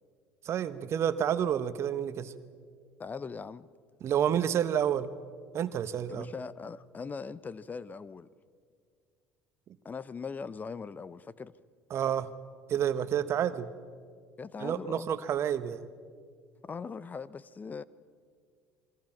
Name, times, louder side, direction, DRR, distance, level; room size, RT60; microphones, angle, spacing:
voice 1, 0.4-2.3 4.0-5.1 5.5-6.3 11.9-12.3 12.7-13.7 14.6-15.9, right 9 dB, 50° right, 13 dB, 1.1 m, -29 dB
voice 2, 3.0-3.7 6.1-8.3 9.8-11.5 13.4-13.6 14.4-15.1 16.6-17.8, left 5 dB, 30° left, 19 dB, 0.7 m, -40 dB
27.5 x 22.0 x 5.9 m, 2.1 s
hypercardioid pair, 70°, 6 cm